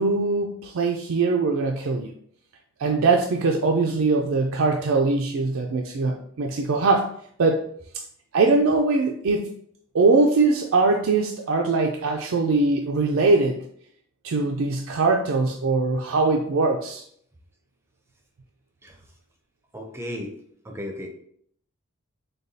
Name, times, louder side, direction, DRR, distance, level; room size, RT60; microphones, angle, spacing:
voice 1, 0.0-2.1 2.8-7.7 8.3-9.6 9.9-13.7 14.2-17.0, right 3 dB, 65° right, 2 dB, 0.4 m, -22 dB
voice 2, 19.7-20.3 20.6-21.1, left 1 dB, 10° right, 2 dB, 0.5 m, -34 dB
6.5 x 2.3 x 2.7 m, 0.64 s
head